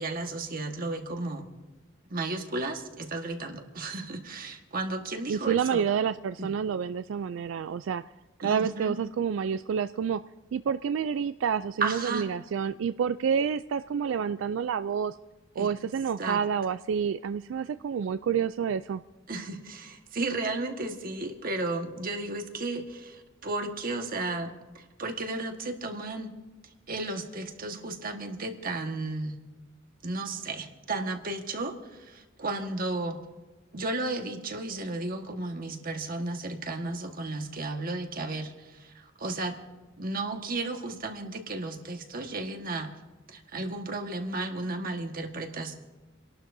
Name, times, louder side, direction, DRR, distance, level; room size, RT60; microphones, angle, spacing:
voice 1, 0.0-1.5 2.1-5.8 6.4-6.5 8.4-9.0 11.8-12.3 15.6-15.7 16.2-16.4 19.3-26.3 26.9-29.4 30.0-33.2 33.7-39.6 40.0-42.9 43.3-45.7, right 2 dB, 50° right, 4 dB, 1.5 m, -34 dB
voice 2, 5.3-8.0 8.4-10.2 10.5-15.2 15.6-19.0, right 7 dB, 80° right, 12 dB, 0.3 m, -28 dB
30.0 x 12.0 x 2.7 m, 1.2 s
head